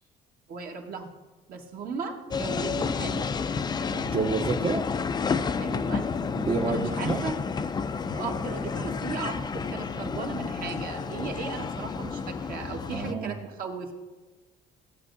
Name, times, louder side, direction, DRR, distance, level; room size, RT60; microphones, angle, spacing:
voice 1, 0.5-1.1 1.5-3.3 5.6-6.1 6.7-7.4 8.1-13.9, right 5 dB, 60° right, 2 dB, 1.4 m, -36 dB
sound 1, 2.3-13.1, left 5 dB, 25° left, 0.4 m, -30 dB
voice 2, 3.9-4.9 6.3-7.3 12.8-13.4, right 4 dB, 35° right, 2 dB, 0.6 m, -29 dB
15.0 x 8.1 x 2.6 m, 1.3 s
cardioid pair, 110°, 17 cm